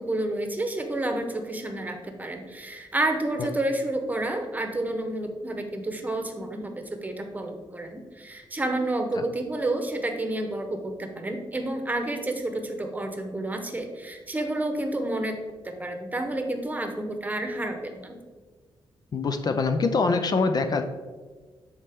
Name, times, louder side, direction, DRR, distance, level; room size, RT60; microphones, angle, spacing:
voice 1, 0.0-15.4 15.6-18.1, right 1 dB, 15° right, 4 dB, 0.9 m, -30 dB
voice 2, 19.1-20.8, left 4 dB, 45° left, 7 dB, 0.5 m, -24 dB
9.8 x 4.2 x 3.5 m, 1.4 s
wide cardioid pair, 115°, 9 cm